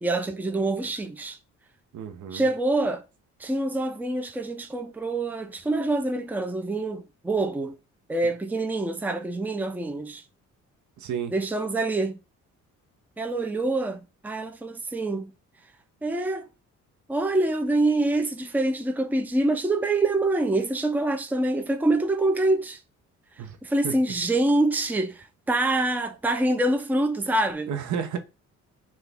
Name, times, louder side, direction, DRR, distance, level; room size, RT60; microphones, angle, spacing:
voice 1, 0.0-1.4 2.3-3.0 3.4-7.8 8.1-10.2 11.3-12.2 13.2-15.3 16.0-16.5 17.1-22.8 23.6-27.7, right 2 dB, 5° right, 0.5 m, -25 dB
voice 2, 1.9-2.5 11.0-11.3 23.4-23.6 23.8-23.9 27.7-28.2, right 7 dB, 70° right, 0.8 m, -31 dB
5.8 x 2.5 x 3.4 m
cardioid pair, 90°, 30 cm